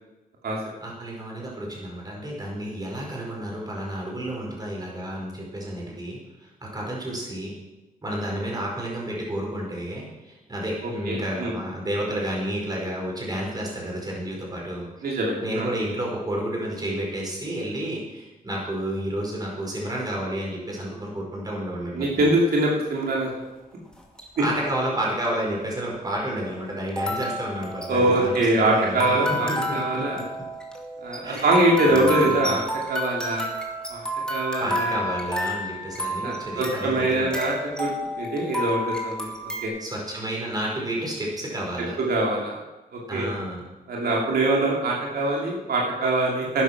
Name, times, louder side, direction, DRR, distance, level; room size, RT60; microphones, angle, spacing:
voice 1, 0.8-7.5 8.0-14.8 15.4-22.3 24.4-30.4 31.2-32.5 34.6-37.3 39.8-42.0 43.1-43.7, right 1 dB, 25° right, -2 dB, 5.0 m, -31 dB
voice 2, 11.1-11.5 15.0-15.7 21.9-23.3 27.9-30.2 31.0-32.6 32.9-33.5 33.9-34.0 34.3-35.0 36.2-37.9 38.1-39.3 39.6-39.7 42.0-42.5 42.9-43.3 43.9-46.6, right 2 dB, 85° right, -3 dB, 2.8 m, -23 dB
sound 1, 23.9-24.4 25.2-25.3 26.9-39.7, equal, 5° left, 2.2 m, -30 dB
12.0 x 10.0 x 6.0 m, 1.1 s
wide cardioid pair, 115°, 15 cm